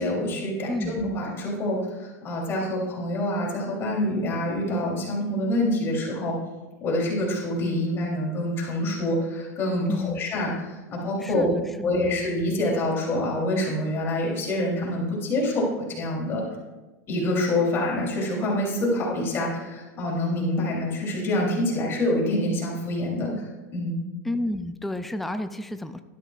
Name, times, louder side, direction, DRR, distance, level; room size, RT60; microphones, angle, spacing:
voice 1, 0.0-6.4 6.8-11.5 11.8-16.4 17.1-23.5 23.7-24.0, left 1 dB, 30° left, -3 dB, 3.2 m, -26 dB
voice 2, 0.7-1.0 9.9-10.2 11.2-11.9 24.2-26.0, left 1 dB, ahead, 9 dB, 0.4 m, -31 dB
12.0 x 12.0 x 2.4 m, 1.1 s
supercardioid pair, 135°, 8 cm